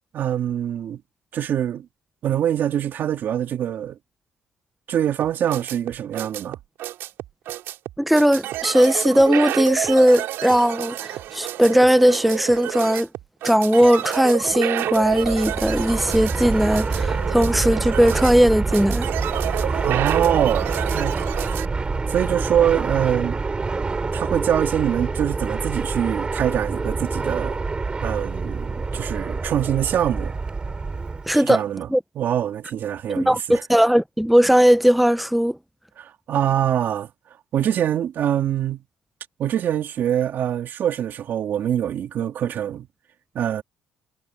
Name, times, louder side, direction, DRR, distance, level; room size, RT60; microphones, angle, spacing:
voice 1, 0.1-1.0 1.3-1.9 2.2-4.0 4.9-6.6 19.8-21.1 22.1-23.4 24.1-27.6 28.0-30.3 31.4-31.9 32.2-33.6 36.0-37.1 37.5-38.8 39.4-42.9 43.4-43.6, right 10 dB, 60° right, 1.9 m, -24 dB
sound 1, 5.2-21.7, right 13 dB, 80° right, 5.4 m, -29 dB
voice 2, 8.0-13.1 13.4-19.1 31.3-31.6 31.9-32.0 33.1-35.6, equal, ahead, 0.8 m, -18 dB
Fixed-wing aircraft airplane, 15.0-31.4, right 4 dB, 25° right, 4.3 m, -26 dB
cardioid pair, 105°, 4 cm